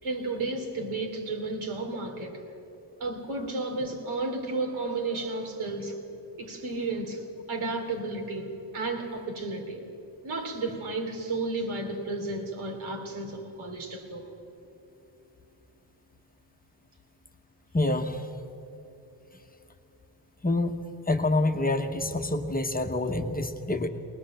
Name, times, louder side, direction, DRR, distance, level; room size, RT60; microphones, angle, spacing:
voice 1, 0.0-2.4 3.0-6.0 6.4-7.2 7.5-9.8 10.2-14.3, right 2 dB, 90° right, 3 dB, 3.3 m, -33 dB
voice 2, 17.7-18.3 20.4-20.7 21.1-23.9, left 2 dB, 20° left, 5 dB, 1.0 m, -27 dB
22.5 x 19.5 x 7.6 m, 2.9 s
wide cardioid pair, 160°, 47 cm